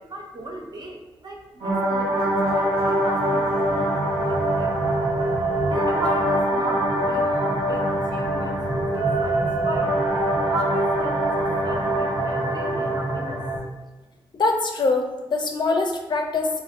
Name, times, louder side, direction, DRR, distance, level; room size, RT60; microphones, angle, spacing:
voice 1, 0.0-4.7 5.6-9.9 10.5-13.4, right 1 dB, 45° right, 1 dB, 0.6 m, -35 dB
sound 1, 1.6-13.6, right 1 dB, 75° right, 0.7 m, -23 dB
voice 2, 14.3-16.6, left 3 dB, 50° left, 3 dB, 0.4 m, -23 dB
3.4 x 2.4 x 2.4 m, 1.1 s
cardioid pair, 60°, 10 cm